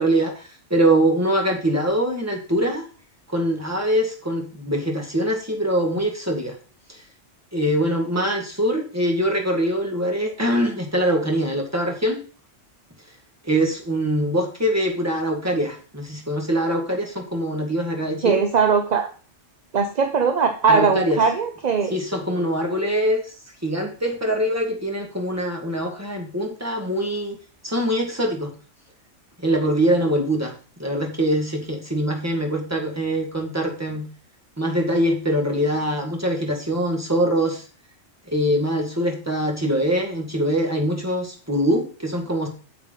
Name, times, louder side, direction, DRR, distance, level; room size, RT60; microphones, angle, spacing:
voice 1, 0.0-2.8 3.3-6.5 6.9-7.0 7.5-12.2 13.4-18.4 20.7-21.2 21.9-23.3 23.6-27.4 27.6-28.5 29.4-30.5 30.8-34.1 34.6-37.6 38.3-42.5, right 1 dB, 10° right, 1 dB, 1.8 m, -23 dB
voice 2, 18.2-19.1 19.7-22.0, right 5 dB, 40° right, 6 dB, 0.7 m, -20 dB
8.2 x 7.5 x 4.0 m, 0.38 s
omnidirectional pair, 1.3 m